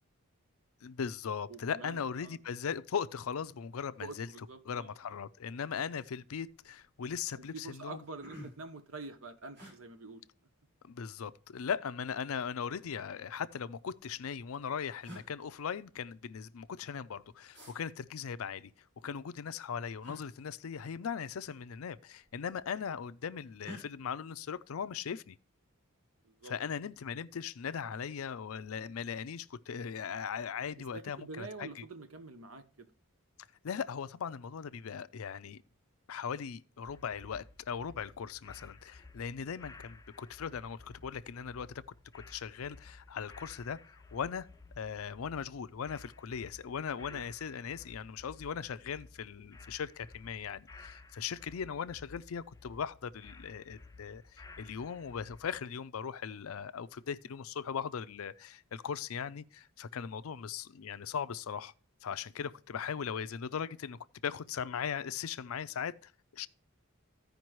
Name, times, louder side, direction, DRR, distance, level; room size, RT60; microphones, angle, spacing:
voice 1, 0.8-4.3 4.7-8.0 10.9-18.7 19.0-25.4 26.4-31.8 33.6-35.6 36.1-41.8 42.1-44.5 44.8-61.7 62.0-66.5, left 7 dB, 75° left, 0.5 m, -39 dB
voice 2, 1.5-2.4 4.0-5.1 7.3-10.2 26.2-26.5 30.9-32.9 47.1-47.3 62.3-62.5, right 3 dB, 75° right, 1.0 m, -47 dB
sound 1, 6.5-6.9 7.5-7.6 7.8-8.8 9.5-9.7 11.0-11.6 12.8-13.6 14.5-14.6 15.0-15.3 17.5-17.8 20.0-20.2 21.6-21.8 22.1-22.7 23.6-23.8, equal, 50° right, 4.9 m, -50 dB
sound 2, 36.9-55.5, left 3 dB, 15° left, 0.5 m, -55 dB
15.0 x 5.1 x 3.1 m
head